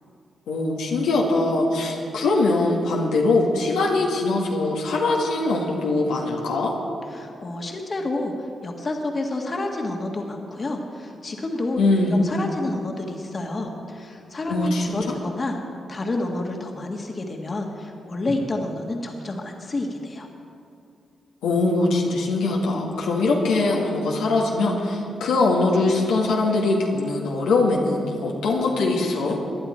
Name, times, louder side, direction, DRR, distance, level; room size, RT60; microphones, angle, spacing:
voice 1, 0.5-6.7 11.8-12.2 14.5-14.8 21.4-29.4, left 2 dB, 90° left, -2 dB, 1.8 m, -22 dB
voice 2, 7.1-11.8 12.1-15.6 15.9-20.3, left 2 dB, 45° left, 2 dB, 1.8 m, -29 dB
18.5 x 11.0 x 4.4 m, 2.5 s
supercardioid pair, 55°, 0 cm